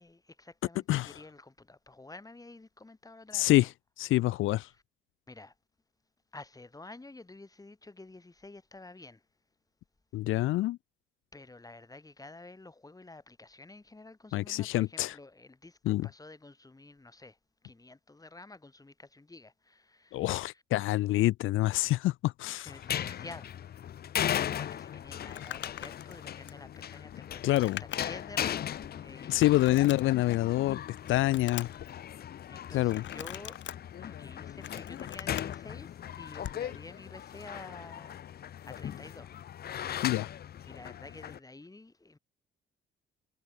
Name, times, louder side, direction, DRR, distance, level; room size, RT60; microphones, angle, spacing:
voice 1, 0.0-3.7 5.3-5.5 6.3-9.2 11.3-17.4 17.6-20.3 20.5-20.6 22.5-23.7 24.2-29.7 32.5-33.6 33.9-39.3 40.7-42.2, left 2 dB, 20° left, 7.9 m, -50 dB
voice 2, 3.3-3.7 4.0-4.7 10.1-10.8 14.3-15.1 15.8-16.1 20.1-22.7 27.4-27.8 29.3-30.8 31.1-31.7 32.7-33.0 40.0-40.3, left 16 dB, 90° left, 1.1 m, -26 dB
sound 1, 22.7-41.4, left 10 dB, 50° left, 0.7 m, -38 dB
Crumpling crinkling, 25.2-28.4 28.8-28.9 29.4-30.5 30.9-31.9 32.9-33.7 34.4-35.6 36.4-36.6, left 11 dB, 70° left, 2.0 m, -42 dB
cardioid pair, 90°, 20 cm